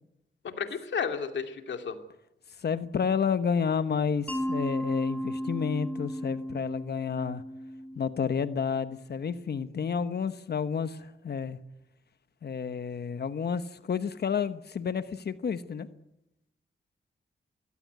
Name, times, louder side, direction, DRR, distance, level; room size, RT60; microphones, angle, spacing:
voice 1, 0.4-2.0, left 6 dB, 75° left, 6 dB, 2.6 m, -32 dB
voice 2, 2.6-7.4 8.0-11.6 12.4-15.9, left 6 dB, 60° left, 12 dB, 1.1 m, -30 dB
Mallet percussion, 4.3-9.0, equal, 5° left, 4.3 m, -35 dB
22.5 x 17.0 x 9.4 m, 0.88 s
cardioid pair, 80°, 19 cm